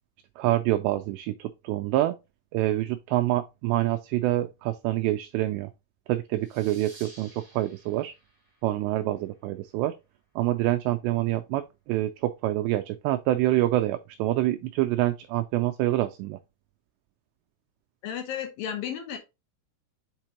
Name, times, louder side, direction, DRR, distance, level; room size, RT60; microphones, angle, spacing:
voice 1, 0.4-2.2 2.5-5.7 6.1-8.1 8.6-9.9 10.4-16.4, right 15 dB, 90° right, 2.4 m, -26 dB
sound 1, 6.4-9.7, right 2 dB, 30° right, 4.0 m, -53 dB
voice 2, 18.0-19.2, left 9 dB, 80° left, 2.1 m, -33 dB
7.6 x 4.5 x 2.9 m
omnidirectional pair, 5.5 m